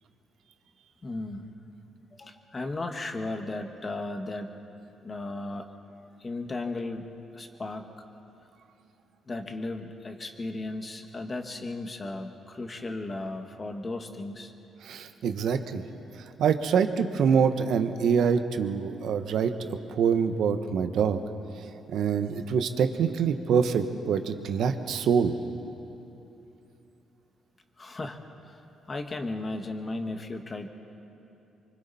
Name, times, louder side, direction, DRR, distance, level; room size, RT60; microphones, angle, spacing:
voice 1, 1.0-1.6 2.2-4.6 5.0-5.7 6.2-7.1 7.3-7.9 9.3-14.5 27.8-28.2 28.5-28.6 28.9-30.7, left 2 dB, 30° left, 5 dB, 1.7 m, -35 dB
voice 2, 14.8-15.8 16.4-21.2 21.9-25.3, right 6 dB, 75° right, 8 dB, 1.1 m, -25 dB
25.0 x 24.5 x 4.2 m, 3.0 s
cardioid pair, 90°, 0 cm